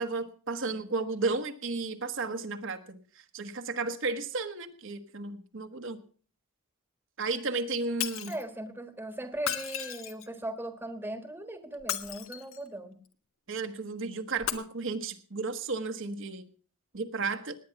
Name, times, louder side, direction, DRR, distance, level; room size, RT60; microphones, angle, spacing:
voice 1, 0.0-3.0 3.3-6.0 7.2-8.3 13.5-16.5 16.9-17.6, right 3 dB, 60° right, 6 dB, 1.3 m, -33 dB
Shatter, 8.0-8.4 9.4-10.4 11.7-12.7 14.4-14.5, left 10 dB, 70° left, 1.3 m, -34 dB
voice 2, 8.3-13.0, right 1 dB, 10° right, 9 dB, 1.4 m, -38 dB
18.5 x 9.5 x 5.8 m, 0.43 s
head